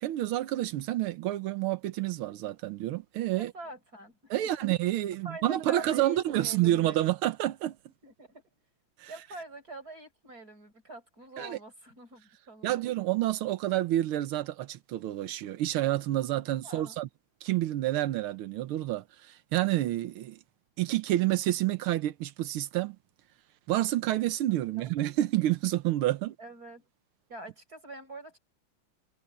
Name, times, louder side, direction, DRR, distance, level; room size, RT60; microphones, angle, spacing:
voice 1, 0.0-3.5 4.3-7.8 9.0-9.1 11.4-11.6 12.6-17.1 17.4-20.4 20.8-23.0 23.7-26.4, right 14 dB, 90° right, 1.7 m, -29 dB
voice 2, 3.4-4.7 5.2-7.0 8.0-8.4 9.1-12.8 16.6-17.0 24.7-24.9 26.4-26.9 27.3-28.4, right 2 dB, 45° right, 5.6 m, -46 dB
omnidirectional pair, 2.3 m